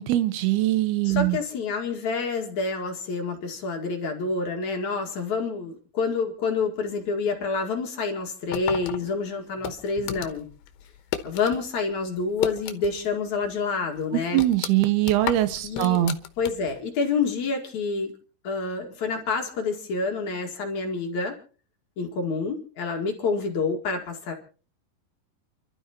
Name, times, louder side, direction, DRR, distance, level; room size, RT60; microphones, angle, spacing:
voice 1, 0.0-1.4 14.3-16.2, right 14 dB, 80° right, 2.9 m, -22 dB
voice 2, 1.0-10.5 11.2-14.4 15.6-16.0 16.4-18.1 18.4-21.4 22.0-24.3, left 4 dB, 55° left, 3.1 m, -28 dB
sound 1, 8.5-11.6 11.9-13.1 13.4-13.5 14.0-16.8, left 11 dB, 80° left, 3.0 m, -34 dB
29.0 x 12.5 x 3.0 m
omnidirectional pair, 4.5 m